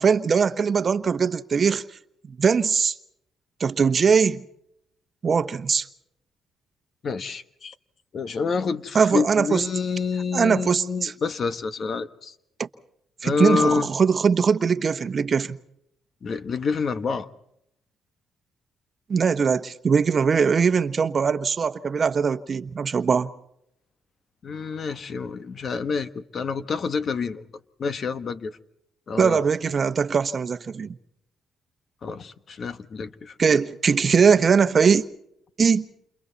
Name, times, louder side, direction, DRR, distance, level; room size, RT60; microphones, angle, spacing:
voice 1, 0.0-1.8 2.4-2.9 3.6-4.4 5.2-5.9 8.9-9.6 10.3-11.1 12.6-12.7 13.2-15.6 19.1-23.3 29.2-31.0 33.4-35.0 35.6-35.8, right 6 dB, 45° right, 1.1 m, -21 dB
voice 2, 7.0-7.7 8.1-12.3 13.2-13.9 16.2-17.3 24.4-27.4 27.8-28.6 29.1-29.4 32.0-33.6, left 5 dB, 50° left, 1.3 m, -28 dB
29.5 x 28.5 x 4.1 m
cardioid pair, 90°, 0 cm